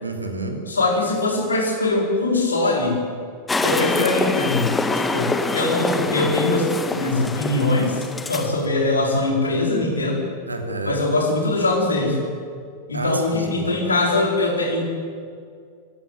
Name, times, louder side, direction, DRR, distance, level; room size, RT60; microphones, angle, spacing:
voice 1, 0.0-0.7 10.5-11.0 12.9-13.7, right 2 dB, 80° right, 5 dB, 2.8 m, -29 dB
voice 2, 0.7-3.0 3.6-10.2 10.8-12.2 12.9-14.8, left 2 dB, 75° left, 1 dB, 4.6 m, -22 dB
sound 1, 3.5-8.6, left 3 dB, 10° left, 1.7 m, -25 dB
24.0 x 14.5 x 9.4 m, 2.2 s
figure-of-eight pair, 90°, 0 cm